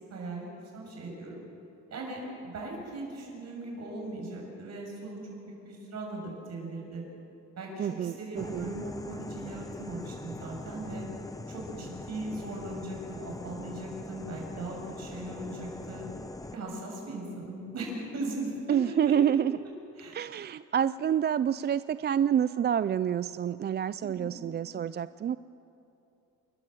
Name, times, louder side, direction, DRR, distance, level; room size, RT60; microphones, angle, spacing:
voice 1, 0.1-0.5 0.7-1.4 1.9-5.2 5.6-7.0 7.6-11.1 11.5-16.1 16.5-18.5 18.9-19.0 20.0-20.2 24.0-24.3, right 2 dB, 60° right, -1 dB, 7.2 m, -39 dB
voice 2, 7.8-8.7 18.7-19.6 20.1-25.4, right 9 dB, 35° right, 15 dB, 0.4 m, -28 dB
sound 1, 8.4-16.6, left 2 dB, 10° left, 0.7 m, -42 dB
28.0 x 13.5 x 7.7 m, 2.9 s
cardioid pair, 90°, 30 cm